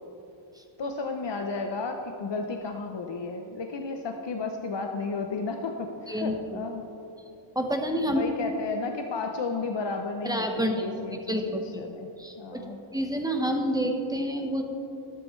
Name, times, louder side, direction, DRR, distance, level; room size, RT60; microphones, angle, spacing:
voice 1, 0.8-6.8 8.1-12.1 12.4-12.8, left 4 dB, 60° left, 4 dB, 0.8 m, -33 dB
voice 2, 6.1-6.6 7.5-8.2 10.2-10.9 11.3-11.8 12.2-14.6, equal, 10° right, 3 dB, 1.1 m, -29 dB
12.5 x 12.5 x 3.2 m, 3.0 s
wide cardioid pair, 75°, 48 cm